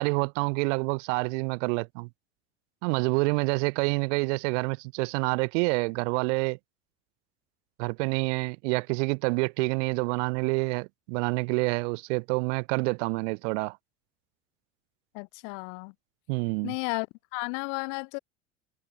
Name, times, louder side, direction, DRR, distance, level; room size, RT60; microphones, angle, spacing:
voice 1, 0.0-2.1 2.8-6.6 7.8-13.8 16.3-16.7, right 31 dB, 65° right, 0.5 m, -27 dB
voice 2, 15.1-15.9 16.6-17.1 17.3-18.2, left 40 dB or more, 70° left, 2.3 m, -33 dB
hypercardioid pair, 75°, 39 cm